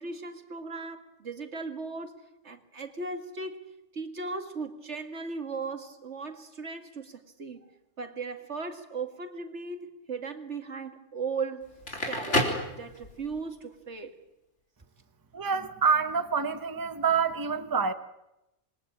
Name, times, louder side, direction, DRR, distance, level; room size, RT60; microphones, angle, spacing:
voice 1, 0.0-7.6 8.0-11.7 12.1-14.2, right 4 dB, 75° right, 2.5 m, -37 dB
Crackle, 11.7-13.4, left 1 dB, 90° left, 4.3 m, -29 dB
voice 2, 15.3-17.9, right 6 dB, 20° right, 1.0 m, -27 dB
27.0 x 21.5 x 8.8 m
omnidirectional pair, 1.2 m